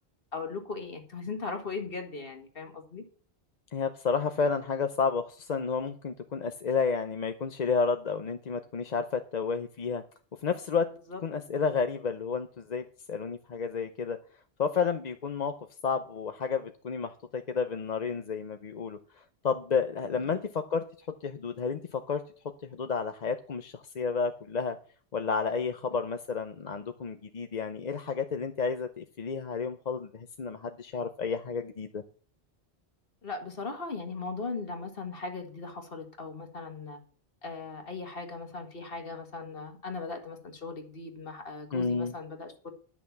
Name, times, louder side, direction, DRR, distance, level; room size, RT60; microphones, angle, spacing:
voice 1, 0.3-3.0 11.1-11.2 33.2-37.0 37.4-42.5, left 4 dB, 60° left, 5 dB, 2.0 m, -38 dB
voice 2, 3.7-10.0 10.4-10.9 11.2-14.2 14.6-15.5 15.8-20.8 21.2-22.2 22.6-24.8 25.1-32.0 41.7-42.1, left 5 dB, 45° left, 8 dB, 0.7 m, -31 dB
10.5 x 6.0 x 7.1 m, 0.43 s
omnidirectional pair, 1.1 m